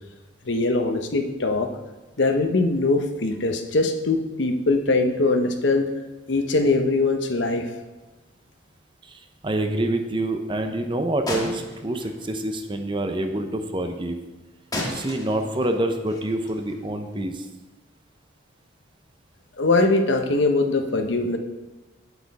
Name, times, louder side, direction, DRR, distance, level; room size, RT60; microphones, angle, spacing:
voice 1, 0.5-1.7 2.2-5.9 6.3-7.7 19.6-21.4, left 3 dB, 70° left, 6 dB, 0.9 m, -22 dB
voice 2, 9.0-14.2 14.9-17.5, right 1 dB, 25° right, 6 dB, 0.8 m, -27 dB
sound 1, 11.3-12.5 14.7-17.2, left 1 dB, 20° left, 1.5 m, -34 dB
8.7 x 8.2 x 4.1 m, 1.2 s
head